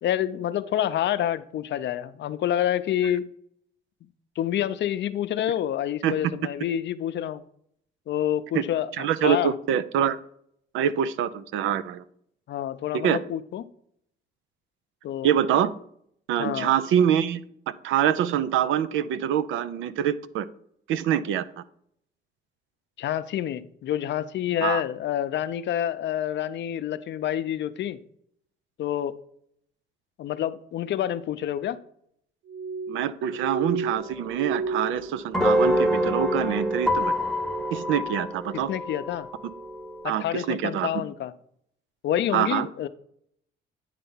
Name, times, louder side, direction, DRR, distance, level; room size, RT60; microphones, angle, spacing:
voice 1, 0.0-3.3 4.4-7.4 8.1-9.5 12.5-13.6 15.0-15.3 16.4-16.7 23.0-28.0 28.8-29.1 30.2-31.8 38.5-39.3 40.0-41.3 42.0-42.9, left 11 dB, 65° left, 0.5 m, -28 dB
voice 2, 9.0-10.2 10.7-12.0 12.9-13.2 15.2-15.7 16.3-17.4 17.8-20.5 20.9-21.5 24.6-24.8 32.9-37.1 37.7-38.7 40.0-41.0 42.3-42.7, right 9 dB, 90° right, 0.5 m, -25 dB
Glass, 32.5-37.0 37.3-38.0 38.4-38.9 39.5-39.8, right 4 dB, 70° right, 1.1 m, -34 dB
sound 1, 33.9-40.1, equal, ahead, 0.9 m, -27 dB
9.4 x 3.4 x 5.5 m
cardioid pair, 90°, 20 cm